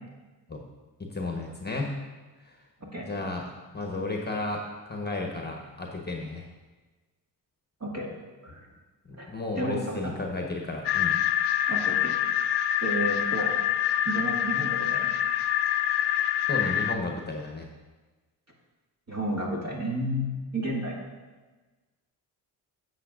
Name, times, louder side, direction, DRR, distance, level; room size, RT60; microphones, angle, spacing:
voice 1, 1.0-2.0 2.4-2.6 3.0-6.5 9.0-11.2 16.5-17.7, left 2 dB, 20° left, 1 dB, 1.1 m, -33 dB
voice 2, 7.8-8.2 8.4-8.6 9.2-9.3 9.6-10.1 11.7-12.2 12.8-13.5 14.1-15.1 19.1-21.0, equal, 35° right, -3 dB, 2.1 m, -31 dB
sound 1, 10.9-17.0, left 10 dB, 65° left, 0.6 m, -26 dB
8.9 x 7.8 x 2.5 m, 1.3 s
supercardioid pair, 60°, 45 cm